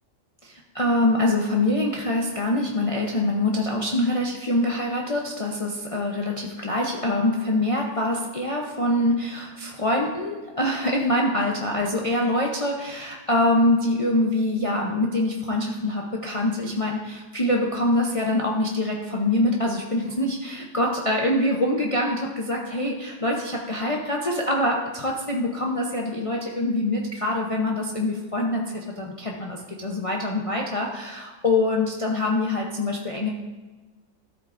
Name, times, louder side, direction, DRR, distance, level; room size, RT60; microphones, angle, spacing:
voice 1, 0.4-33.3, left 1 dB, 30° left, -2 dB, 0.8 m, -24 dB
13.5 x 8.2 x 2.6 m, 1.3 s
omnidirectional pair, 1.4 m